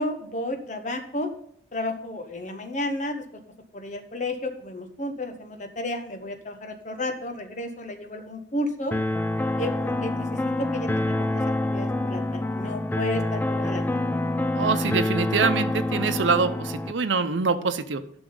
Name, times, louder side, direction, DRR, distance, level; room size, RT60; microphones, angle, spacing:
voice 1, 0.0-1.3 1.7-3.4 3.7-9.0 9.6-14.0, left 1 dB, 40° left, 7 dB, 1.1 m, -32 dB
sound 1, 8.9-16.9, left 1 dB, 10° left, 0.3 m, -26 dB
voice 2, 14.5-18.0, right 4 dB, 90° right, 9 dB, 0.7 m, -24 dB
11.5 x 6.1 x 3.9 m, 0.71 s
head